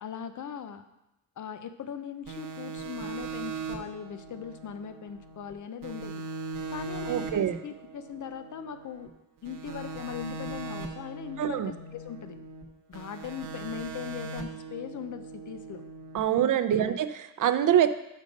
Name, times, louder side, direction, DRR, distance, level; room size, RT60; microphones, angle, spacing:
voice 1, 0.0-0.8 1.4-6.2 6.7-9.1 9.4-12.4 12.9-15.8 16.3-17.0, left 8 dB, 65° left, 10 dB, 0.7 m, -39 dB
sound 1, 2.3-5.5 5.8-9.1 9.5-12.6 12.9-16.2, right 4 dB, 90° right, 0.9 m, -40 dB
voice 2, 7.1-7.6 11.4-11.7 16.1-17.9, right 10 dB, 70° right, 12 dB, 0.5 m, -25 dB
6.4 x 5.2 x 5.2 m, 0.91 s
cardioid pair, 90°, 32 cm